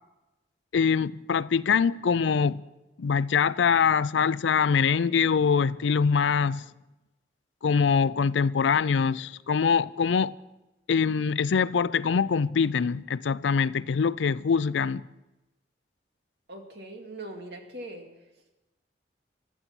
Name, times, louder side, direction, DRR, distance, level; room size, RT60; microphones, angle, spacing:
voice 1, 0.7-2.6 3.0-6.6 7.6-10.3 10.9-15.0, left 6 dB, 90° left, 0.4 m, -24 dB
voice 2, 16.5-18.1, right 1 dB, 65° right, 2.3 m, -41 dB
16.0 x 12.5 x 6.0 m
head